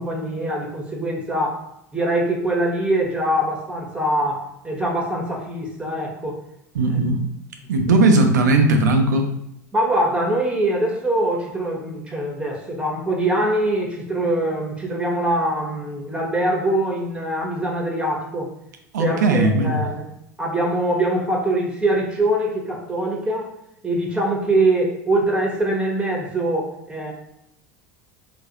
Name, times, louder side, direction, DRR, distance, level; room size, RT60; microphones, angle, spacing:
voice 1, 0.0-1.6 1.9-6.4 9.7-18.5 19.0-20.1 20.4-23.5 23.8-27.1, right 1 dB, 10° right, 0 dB, 1.0 m, -23 dB
voice 2, 6.7-7.2 7.7-9.3 18.9-19.8, right 2 dB, 80° right, 5 dB, 0.6 m, -17 dB
3.8 x 2.5 x 2.9 m, 0.80 s
hypercardioid pair, 85°, 9 cm